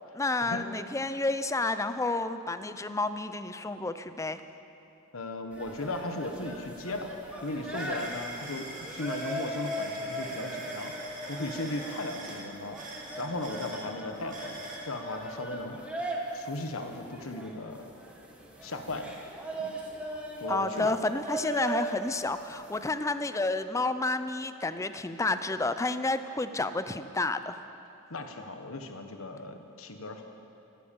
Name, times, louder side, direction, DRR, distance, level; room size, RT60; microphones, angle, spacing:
voice 1, 0.1-4.4 20.5-27.6, left 2 dB, 15° left, 11 dB, 0.5 m, -30 dB
voice 2, 5.1-7.1 7.4-15.8 16.3-17.9 18.6-19.1 19.6-19.7 20.4-21.0 28.1-30.2, left 2 dB, 70° left, 6 dB, 1.3 m, -37 dB
sound 1, 5.5-22.9, right 1 dB, 5° right, 1.6 m, -39 dB
sound 2, 6.3-6.4 6.7-14.9, right 2 dB, 40° right, 2.2 m, -44 dB
14.0 x 13.0 x 7.0 m, 2.8 s
head